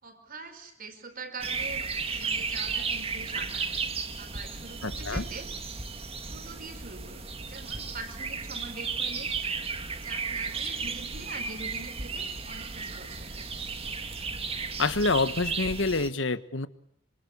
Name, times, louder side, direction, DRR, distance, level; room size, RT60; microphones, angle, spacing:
voice 1, 0.0-1.8 2.2-3.6 4.2-5.5 6.2-9.3 10.0-13.5, right 3 dB, 50° right, 7 dB, 4.8 m, -43 dB
sound 1, 1.4-16.1, right 4 dB, 30° right, 1.9 m, -34 dB
voice 2, 4.8-5.2 14.8-16.7, left 3 dB, 65° left, 13 dB, 1.4 m, -27 dB
26.5 x 25.5 x 8.4 m, 0.68 s
head